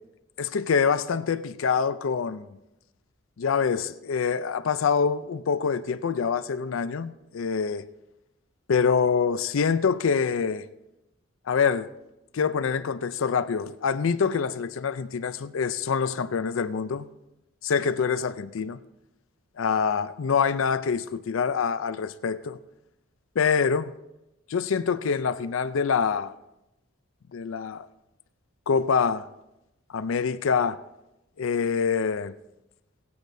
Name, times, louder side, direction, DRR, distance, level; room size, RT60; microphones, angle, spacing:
voice 1, 0.4-2.5 3.4-7.8 8.7-10.7 11.5-11.9 12.3-17.1 17.6-18.8 19.6-22.6 23.4-23.9 24.5-26.3 27.3-27.9 28.7-29.3 29.9-30.8 31.4-32.3, left 6 dB, 75° left, 0.4 m, -25 dB
22.5 x 8.6 x 2.7 m
head